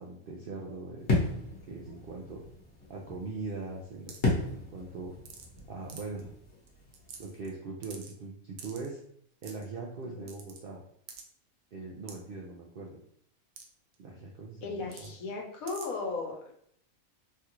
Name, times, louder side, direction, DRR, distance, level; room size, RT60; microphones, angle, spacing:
voice 1, 0.0-1.4 1.7-2.4 2.9-5.1 5.7-6.3 7.2-9.0 9.4-10.8 11.7-13.0 14.0-15.1, right 3 dB, 70° right, -2 dB, 0.5 m, -41 dB
sound 1, 1.0-7.4, left 2 dB, 55° left, 1.2 m, -35 dB
sound 2, 4.1-4.3 5.2-5.6 5.9-6.2 6.7-6.8 6.9-7.5 7.8-8.1 8.6-8.9 9.4-9.6 10.3-10.6 11.1-11.2 12.1-12.2 13.6-13.7 13.9-14.0 14.9-15.1 15.7-15.9, right 6 dB, 90° right, 1.1 m, -46 dB
voice 2, 14.6-16.5, left 3 dB, 75° left, 0 dB, 1.2 m, -36 dB
3.3 x 2.4 x 2.9 m, 0.65 s
omnidirectional pair, 1.5 m